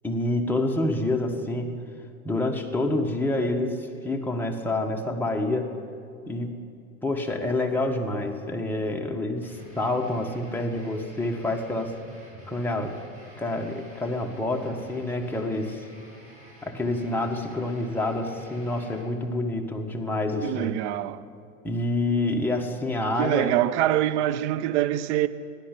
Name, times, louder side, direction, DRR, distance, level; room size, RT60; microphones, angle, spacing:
voice 1, 0.0-1.8 2.2-5.7 6.3-6.6 7.0-12.0 12.5-13.0 13.4-15.9 16.6-20.8 21.6-23.5, left 2 dB, 5° left, 1.5 m, -27 dB
sound 1, 9.4-19.0, equal, 15° right, 5.2 m, -49 dB
voice 2, 20.4-21.2 23.2-25.3, right 13 dB, 55° right, 0.8 m, -24 dB
16.0 x 10.5 x 8.3 m
hypercardioid pair, 105°, 43 cm